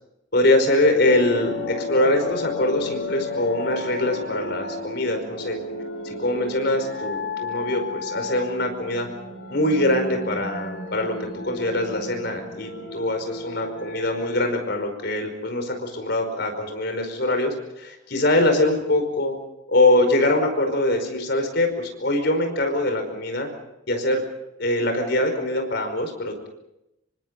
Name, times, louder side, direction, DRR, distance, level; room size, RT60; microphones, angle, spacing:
voice 1, 0.3-5.6 6.0-9.1 9.5-19.3 19.7-23.5 23.9-24.2 24.6-26.5, left 1 dB, 60° left, 6 dB, 5.1 m, -23 dB
sound 1, 1.0-14.5, left 3 dB, 75° left, 6.4 m, -33 dB
27.0 x 24.5 x 5.4 m, 0.87 s
head